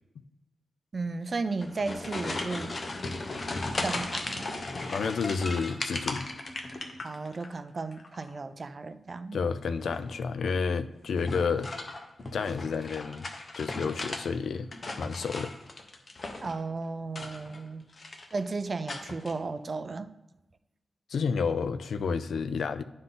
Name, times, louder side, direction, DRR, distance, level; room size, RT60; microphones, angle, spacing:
voice 1, 0.9-2.8 3.8-4.6 7.0-9.4 16.4-17.8 18.3-20.1, right 3 dB, 40° right, 12 dB, 0.4 m, -34 dB
sound 1, 1.5-7.5 7.8-8.4 9.8-10.2 11.2-14.2 14.6-16.6 17.1-17.7 17.9-18.4 18.9-19.3, left 2 dB, 40° left, 0.8 m, -36 dB
voice 2, 4.9-6.3 9.3-11.7 12.3-13.3 13.5-14.7 15.0-15.5 21.1-22.8, left 5 dB, 75° left, 11 dB, 0.4 m, -30 dB
11.0 x 3.9 x 3.8 m, 1.0 s
wide cardioid pair, 115°, 0 cm